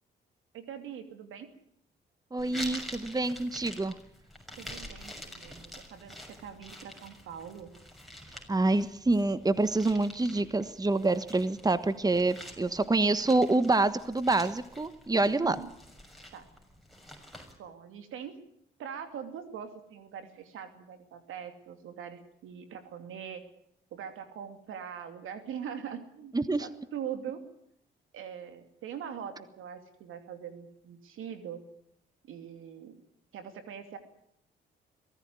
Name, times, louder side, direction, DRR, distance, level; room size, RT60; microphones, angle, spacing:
voice 1, 0.5-1.5 4.6-7.7 15.3-15.7 16.3-16.5 17.6-18.4 18.8-23.4 23.9-27.4 28.1-31.6 32.2-33.0 33.3-34.0, right 8 dB, 75° right, 8 dB, 2.8 m, -42 dB
voice 2, 2.3-3.9 8.5-15.6 26.3-26.7, right 2 dB, 20° right, 13 dB, 1.4 m, -27 dB
sound 1, 2.4-17.6, left 1 dB, ahead, 6.4 m, -47 dB
23.0 x 15.5 x 9.6 m, 0.72 s
supercardioid pair, 60°, 21 cm